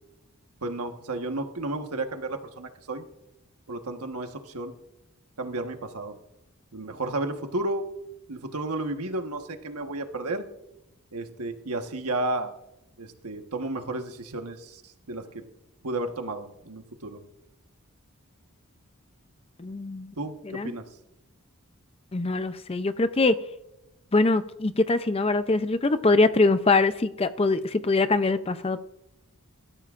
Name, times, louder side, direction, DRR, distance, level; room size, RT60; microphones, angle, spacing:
voice 1, 0.6-3.1 3.7-4.7 5.4-6.1 6.7-7.9 8.3-10.5 11.1-12.5 13.0-14.8 15.1-15.4 15.8-17.2 20.2-20.8, right 2 dB, 85° right, 6 dB, 1.3 m, -32 dB
voice 2, 19.6-20.1 20.4-20.7 22.1-23.4 24.1-28.8, left 3 dB, 25° left, 11 dB, 0.5 m, -23 dB
24.5 x 13.5 x 2.5 m, 0.89 s
head